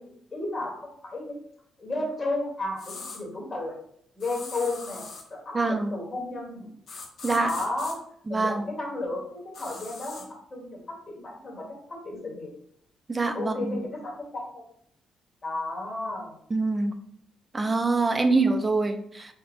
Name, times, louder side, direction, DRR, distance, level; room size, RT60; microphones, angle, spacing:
voice 1, 0.0-1.4 1.8-3.8 4.1-6.7 7.3-8.0 8.3-10.2 10.5-12.5 13.3-14.6 15.4-16.3 18.1-18.3, left 2 dB, 35° left, -2 dB, 1.7 m, -33 dB
sound 1, 2.8-3.2 4.2-5.3 6.9-8.0 9.5-10.3, left 4 dB, 55° left, 0.8 m, -41 dB
voice 2, 5.5-6.0 7.2-7.5 8.3-8.6 13.1-13.6 16.5-16.9 17.5-19.3, right 3 dB, 25° right, 7 dB, 0.5 m, -24 dB
4.3 x 2.2 x 3.9 m, 0.68 s
cardioid pair, 90°, 0 cm